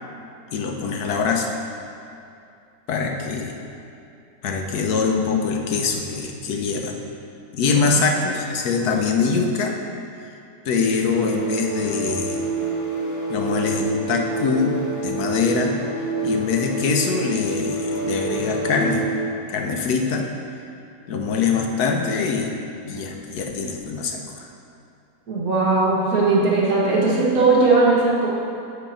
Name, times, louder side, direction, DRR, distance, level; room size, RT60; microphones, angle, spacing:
voice 1, 0.5-1.5 2.9-3.6 4.4-7.0 7.5-9.8 10.6-12.4 13.3-14.7 15.0-15.7 16.2-19.0 19.5-20.3 21.1-22.5 22.8-24.5, left 5 dB, 80° left, 2 dB, 1.3 m, -23 dB
sound 1, 10.9-19.3, right 2 dB, 55° left, 1.4 m, -27 dB
voice 2, 25.3-28.3, right 3 dB, 65° right, -5 dB, 1.8 m, -18 dB
8.1 x 4.1 x 5.7 m, 2.6 s
omnidirectional pair, 1.7 m